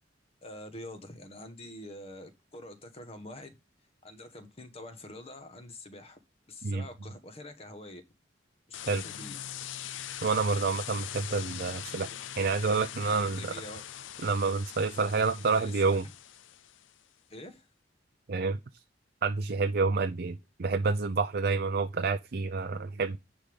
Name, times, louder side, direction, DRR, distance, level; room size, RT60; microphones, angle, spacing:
voice 1, 0.4-3.5 4.0-6.2 6.5-8.0 8.7-9.4 13.1-13.8 15.5-16.1 17.3-17.7, left 1 dB, 35° left, 1.2 m, -46 dB
sound 1, 8.7-16.9, left 10 dB, 90° left, 0.5 m, -42 dB
voice 2, 10.2-12.1 12.4-13.5 14.2-16.0 18.3-18.6 19.2-23.2, right 4 dB, 55° right, 0.5 m, -28 dB
10.0 x 3.6 x 5.2 m
head